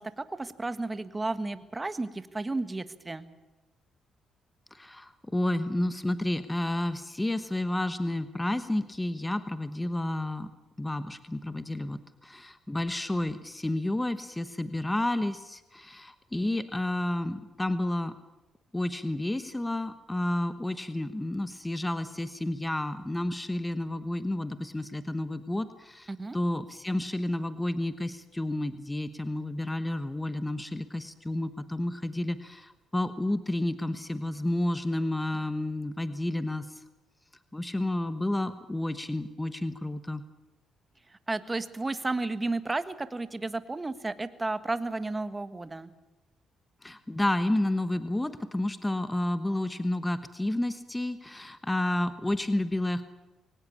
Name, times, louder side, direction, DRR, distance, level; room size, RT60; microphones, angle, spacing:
voice 1, 0.0-3.3 26.1-26.4 41.3-45.9, right 2 dB, 20° right, 12 dB, 1.5 m, -33 dB
voice 2, 4.7-10.5 10.8-18.1 18.7-36.8 37.5-40.2 46.8-53.0, left 1 dB, 10° left, 11 dB, 1.2 m, -31 dB
22.5 x 19.0 x 8.7 m, 1.1 s
cardioid pair, 90°, 0 cm